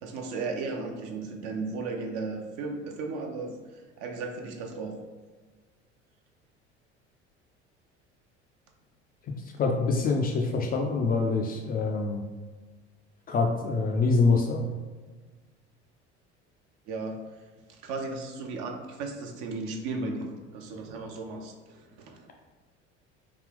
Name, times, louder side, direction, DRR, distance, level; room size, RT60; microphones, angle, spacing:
voice 1, 0.0-5.0 16.9-17.2 17.8-22.2, right 3 dB, 55° right, 2 dB, 0.7 m, -35 dB
voice 2, 9.6-12.2 13.3-14.6, left 4 dB, 25° left, 2 dB, 0.4 m, -25 dB
3.4 x 2.3 x 3.5 m, 1.4 s
figure-of-eight pair, 60°, 35 cm